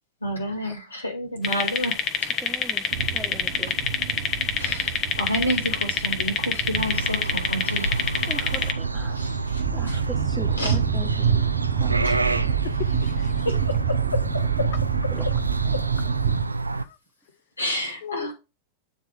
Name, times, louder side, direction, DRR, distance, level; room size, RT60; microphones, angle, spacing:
voice 1, 0.2-2.4 4.6-8.1 9.1-10.1 10.6-10.8 12.0-12.6 13.5-14.7 15.7-15.9 17.6-18.3, equal, 80° left, 2.0 m, -30 dB
sound 1, 1.4-8.7, left 7 dB, 30° left, 1.0 m, -26 dB
voice 2, 2.4-2.9 3.1-3.8 8.3-9.4 9.7-12.0 15.2-15.3, right 2 dB, 5° right, 1.1 m, -39 dB
sound 2, 2.9-16.4, right 7 dB, 55° right, 1.2 m, -27 dB
sound 3, 6.7-16.8, right 3 dB, 80° right, 0.4 m, -29 dB
voice 3, 12.6-13.5 16.7-17.0 18.0-18.3, left 10 dB, 50° left, 0.5 m, -36 dB
8.9 x 3.6 x 4.9 m
figure-of-eight pair, 90°, 0 cm